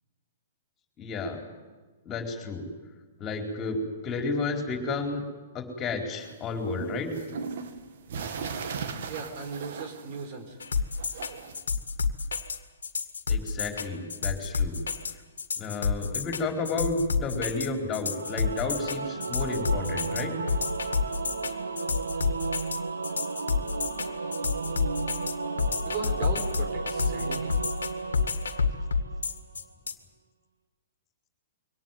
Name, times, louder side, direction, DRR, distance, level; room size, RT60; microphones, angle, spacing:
voice 1, 1.0-1.4 2.0-2.6 3.2-3.8 4.0-5.2 5.5-7.1 13.3-14.8 15.6-20.3, left 3 dB, 25° left, 2 dB, 4.5 m, -32 dB
sound 1, 6.2-10.5 10.8-11.6, right 5 dB, 65° right, 2.3 m, -37 dB
voice 2, 9.1-10.6 25.8-27.5, right 4 dB, 45° right, 6 dB, 4.3 m, -37 dB
sound 2, 10.6-29.9, left 5 dB, 80° left, 1.9 m, -29 dB
Singing / Musical instrument, 18.1-29.4, right 4 dB, 85° right, 2.0 m, -34 dB
23.5 x 18.0 x 9.3 m, 1.3 s
hypercardioid pair, 120°, 0 cm